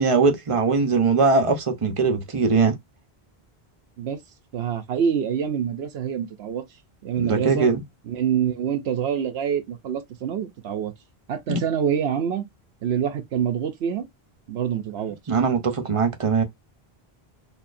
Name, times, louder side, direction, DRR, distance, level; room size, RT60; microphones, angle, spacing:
voice 1, 0.0-2.7 7.2-7.8 11.5-11.6 15.3-16.4, right 4 dB, 35° right, 0.9 m, -21 dB
voice 2, 4.5-6.6 7.0-7.7 8.1-10.9 11.3-12.4 12.8-14.1 14.5-15.2, right 8 dB, 85° right, 0.9 m, -26 dB
4.2 x 2.8 x 2.5 m
omnidirectional pair, 1.0 m